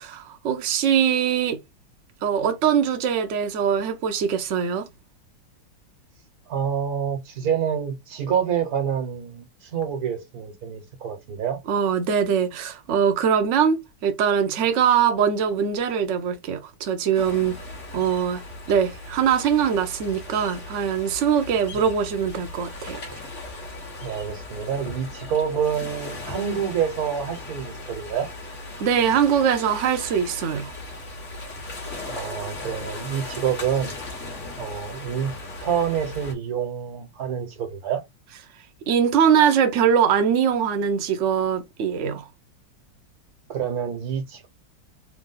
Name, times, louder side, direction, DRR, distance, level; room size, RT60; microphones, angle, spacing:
voice 1, 0.0-1.6 2.2-4.9 11.7-17.6 17.9-23.0 28.8-30.7 38.9-42.3, right 8 dB, 75° right, 0.6 m, -22 dB
voice 2, 6.5-11.6 21.7-21.9 24.0-28.3 32.0-33.9 34.6-35.3 35.6-38.0 43.5-44.5, right 8 dB, 55° right, 1.4 m, -27 dB
sound 1, 17.1-36.3, left 2 dB, 40° left, 1.4 m, -37 dB
3.7 x 2.5 x 3.8 m
omnidirectional pair, 2.2 m